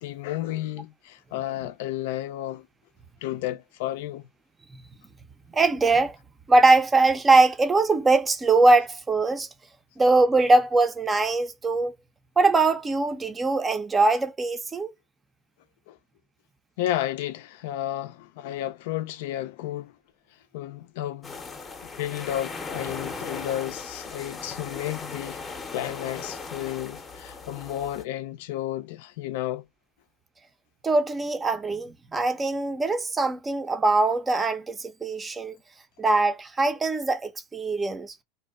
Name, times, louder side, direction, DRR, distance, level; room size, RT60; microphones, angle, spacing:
voice 1, 0.0-2.7 3.2-4.3 15.9-16.0 16.8-19.9 20.5-21.4 22.0-25.4 25.7-29.6, left 13 dB, 70° left, 0.4 m, -32 dB
voice 2, 5.5-6.2 6.5-9.5 10.0-11.9 12.4-14.9 30.8-35.5 36.0-38.1, right 3 dB, 20° right, 0.5 m, -22 dB
sound 1, 21.2-28.0, left 4 dB, 20° left, 0.7 m, -38 dB
2.6 x 2.1 x 2.4 m
hypercardioid pair, 105°, 0 cm